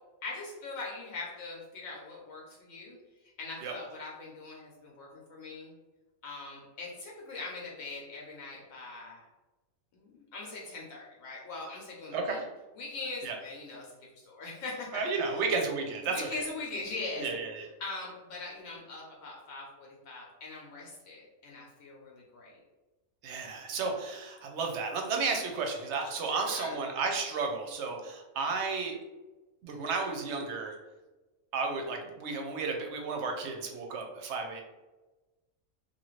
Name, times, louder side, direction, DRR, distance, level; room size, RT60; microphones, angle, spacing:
voice 1, 0.2-3.0 3.4-5.7 6.2-9.2 9.9-12.4 12.8-13.9 14.1-15.4 16.1-17.3 17.8-22.6 26.3-26.8, left 3 dB, 75° left, -3 dB, 1.0 m, -41 dB
voice 2, 14.9-16.3 17.2-17.7 23.2-29.0 29.6-30.8 31.5-34.6, right 4 dB, 65° right, 2 dB, 0.8 m, -33 dB
2.9 x 2.4 x 3.0 m, 1.1 s
omnidirectional pair, 1.5 m